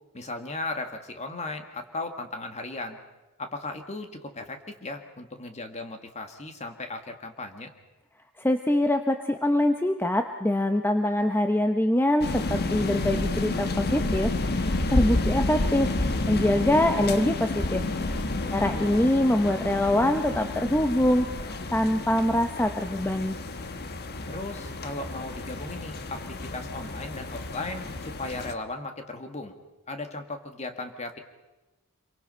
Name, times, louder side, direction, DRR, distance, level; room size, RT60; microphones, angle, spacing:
voice 1, 0.1-3.0 3.4-7.7 18.4-18.8 24.3-29.5 29.9-31.2, left 2 dB, 30° left, 6 dB, 2.0 m, -36 dB
voice 2, 8.4-15.9 16.3-17.8 18.5-23.4, left 1 dB, 10° left, 6 dB, 0.8 m, -24 dB
sound 1, 12.2-28.5, left 2 dB, 45° left, 1.3 m, -30 dB
27.0 x 23.0 x 5.6 m, 1.1 s
head